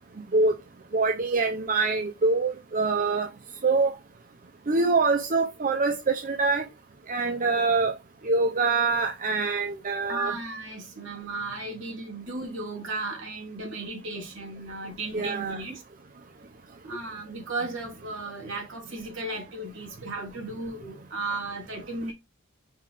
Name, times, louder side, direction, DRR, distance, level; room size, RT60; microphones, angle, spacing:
voice 1, 0.9-3.3 3.6-3.9 4.7-6.7 7.1-7.9 8.2-10.3 15.1-15.6, right 3 dB, 40° right, 0.7 m, -24 dB
voice 2, 10.1-15.8 16.8-22.1, right 2 dB, 65° right, 3.1 m, -35 dB
5.6 x 5.0 x 3.4 m
head